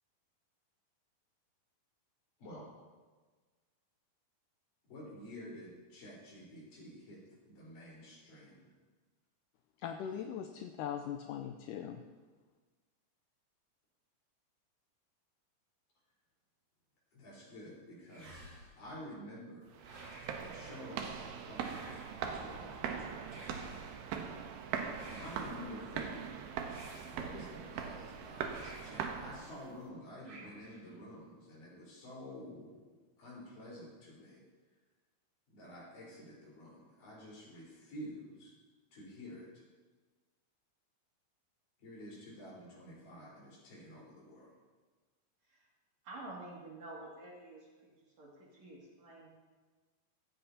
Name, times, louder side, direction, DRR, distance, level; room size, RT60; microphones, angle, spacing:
voice 1, 4.9-8.7 17.1-18.5 18.8-19.8 20.4-23.5 25.1-26.3 27.1-32.8 33.2-34.4 35.5-38.5 38.9-39.5 41.8-44.5, equal, 60° left, -5 dB, 5.9 m, -50 dB
voice 2, 9.8-12.0, left 8 dB, 80° left, 5 dB, 1.9 m, -40 dB
sound 1, 18.1-18.9 19.8-20.5 21.5-22.3 23.2-24.0 24.9-25.7 26.6-27.5 28.4-29.1 30.2-30.9, right 1 dB, 35° right, 4.2 m, -53 dB
sound 2, 19.7-29.7, right 7 dB, 85° right, 2.9 m, -41 dB
voice 3, 46.0-47.9 48.2-49.3, right 2 dB, 50° right, -4 dB, 3.4 m, -49 dB
17.0 x 15.0 x 2.9 m, 1.4 s
omnidirectional pair, 4.3 m